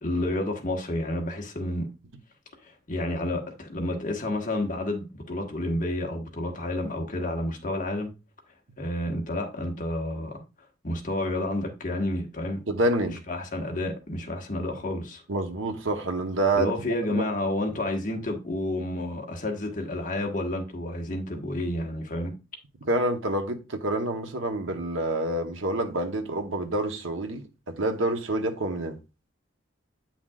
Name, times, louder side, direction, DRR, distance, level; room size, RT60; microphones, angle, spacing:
voice 1, 0.0-1.8 2.6-8.1 8.8-10.4 10.8-12.6 13.3-15.2 16.5-22.3, left 1 dB, 40° left, 1.4 m, -30 dB
voice 2, 12.7-13.2 15.3-16.7 17.1-17.3 22.8-29.0, right 2 dB, 90° right, 1.1 m, -27 dB
8.7 x 5.8 x 2.4 m
head